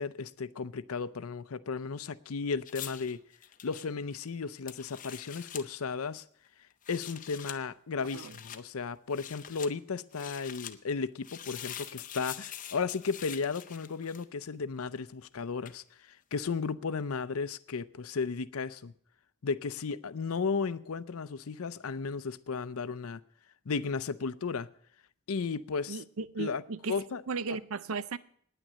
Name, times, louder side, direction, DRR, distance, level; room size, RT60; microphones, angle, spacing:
voice 1, 0.0-3.2 3.6-6.2 6.9-18.9 19.4-23.2 23.7-24.7 25.3-26.0 26.4-26.6 26.9-27.2 27.5-27.6, left 5 dB, 75° left, 0.6 m, -34 dB
sound 1, 2.7-5.7 6.7-7.6 8.0-8.6 9.1-9.7 10.1-10.8 11.2-14.4 15.7-15.8, left 10 dB, 35° left, 0.6 m, -44 dB
voice 2, 25.9-26.9 27.3-28.2, right 4 dB, 70° right, 0.6 m, -36 dB
9.8 x 9.1 x 9.7 m
head